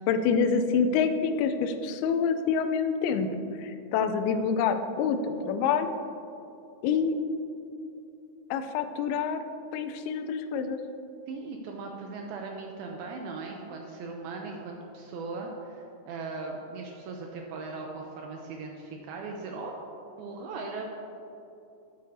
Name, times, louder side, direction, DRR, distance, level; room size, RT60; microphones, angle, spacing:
voice 1, 0.1-3.3 3.6-5.9 6.8-7.2 8.5-9.4 9.7-10.8, left 6 dB, 80° left, 8 dB, 2.4 m, -26 dB
voice 2, 11.3-19.8 20.2-20.8, right 3 dB, 80° right, 1 dB, 2.3 m, -38 dB
13.0 x 9.4 x 2.7 m, 2.8 s
omnidirectional pair, 4.8 m